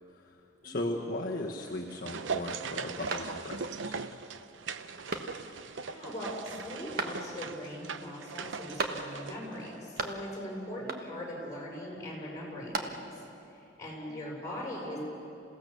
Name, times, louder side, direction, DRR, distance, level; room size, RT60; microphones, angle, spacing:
voice 1, 0.6-4.0, left 1 dB, 45° left, -2 dB, 1.2 m, -36 dB
sound 1, 1.5-10.1 10.3-10.4, right 5 dB, 75° right, 0.7 m, -40 dB
sound 2, 3.1-3.8 4.2-4.3 5.1-5.7 7.0-7.6 8.8-9.4 9.6-10.5 10.9-11.4 12.4-13.3, right 3 dB, 50° right, 1.3 m, -37 dB
voice 2, 5.7-13.1 13.5-15.0, left 1 dB, 15° left, -3 dB, 6.6 m, -40 dB
28.0 x 16.5 x 6.9 m, 2.8 s
head